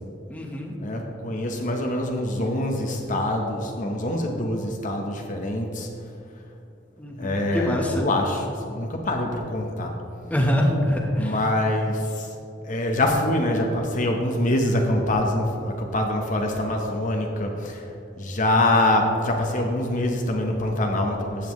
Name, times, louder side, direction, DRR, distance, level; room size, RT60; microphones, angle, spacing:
voice 1, 0.3-0.7 7.0-8.0 10.3-11.3, equal, 10° left, 0 dB, 1.1 m, -24 dB
voice 2, 0.8-5.9 7.2-10.0 11.2-12.3 12.7-17.8 18.2-21.5, left 1 dB, 45° left, 2 dB, 0.9 m, -25 dB
14.0 x 8.4 x 3.2 m, 2.8 s
head